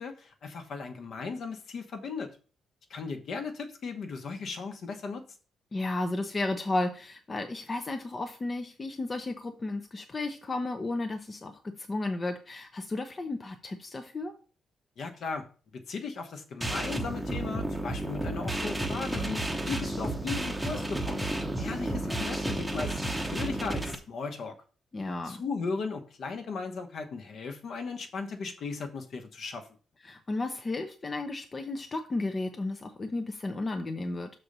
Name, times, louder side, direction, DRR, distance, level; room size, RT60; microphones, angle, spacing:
voice 1, 0.0-2.3 2.9-5.2 15.0-15.5 15.7-21.2 21.6-24.5 25.2-29.7, left 4 dB, 50° left, 5 dB, 1.1 m, -37 dB
voice 2, 5.7-11.5 11.8-14.3 24.9-25.4 30.0-34.3, left 2 dB, 20° left, 6 dB, 0.6 m, -33 dB
sound 1, 16.6-23.9, right 1 dB, 5° right, 0.9 m, -32 dB
6.6 x 4.3 x 6.6 m, 0.38 s
cardioid pair, 180°, 0 cm